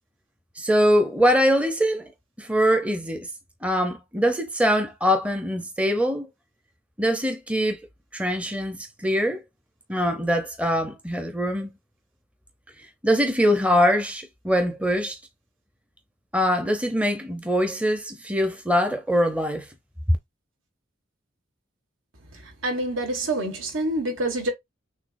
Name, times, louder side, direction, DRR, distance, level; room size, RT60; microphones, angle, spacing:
voice 1, 0.6-2.1 2.4-3.3 3.6-6.3 7.0-7.8 8.1-9.4 9.9-11.7 13.0-15.2 16.3-19.7 20.1-20.2, equal, 5° right, 0.6 m, -23 dB
voice 2, 22.4-24.5, right 1 dB, 75° right, 1.7 m, -27 dB
6.5 x 2.8 x 2.6 m
head